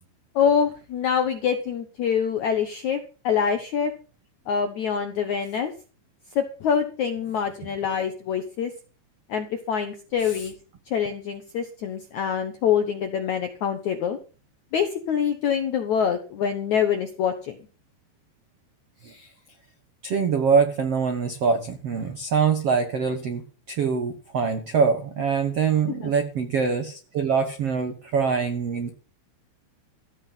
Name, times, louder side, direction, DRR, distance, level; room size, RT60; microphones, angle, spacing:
voice 1, 0.3-3.9 4.5-5.7 6.3-8.7 9.3-10.5 10.9-14.2 14.7-17.5 26.0-26.1, left 7 dB, 75° left, 7 dB, 1.7 m, -25 dB
voice 2, 20.0-28.9, right 5 dB, 90° right, 8 dB, 1.3 m, -24 dB
15.5 x 5.9 x 8.9 m, 0.37 s
omnidirectional pair, 5.1 m